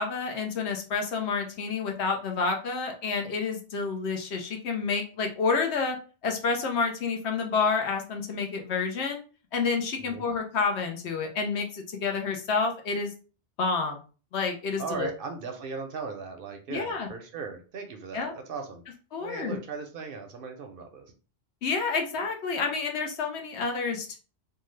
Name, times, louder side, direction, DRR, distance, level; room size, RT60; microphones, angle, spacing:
voice 1, 0.0-6.0 6.2-9.2 9.5-13.1 13.6-14.0 14.3-15.1 16.7-17.1 18.1-18.3 19.1-19.6 21.6-24.2, left 4 dB, 70° left, 3 dB, 0.9 m, -29 dB
voice 2, 14.8-18.8 19.2-21.1, right 4 dB, 60° right, 5 dB, 0.7 m, -37 dB
2.7 x 2.2 x 3.1 m, 0.36 s
omnidirectional pair, 1.2 m